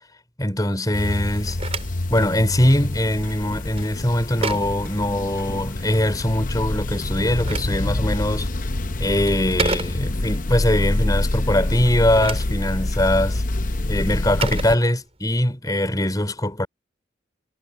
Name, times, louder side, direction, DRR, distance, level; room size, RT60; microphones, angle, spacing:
voice 1, 0.4-1.6 2.1-8.5 9.0-13.4 13.9-16.7, left 1 dB, 20° left, 4.7 m, -22 dB
sound 1, 0.9-14.8, left 2 dB, 45° left, 0.8 m, -26 dB
Telephone, 1.3-5.8 7.0-10.4 11.9-15.4, right 4 dB, 30° right, 5.9 m, -34 dB
head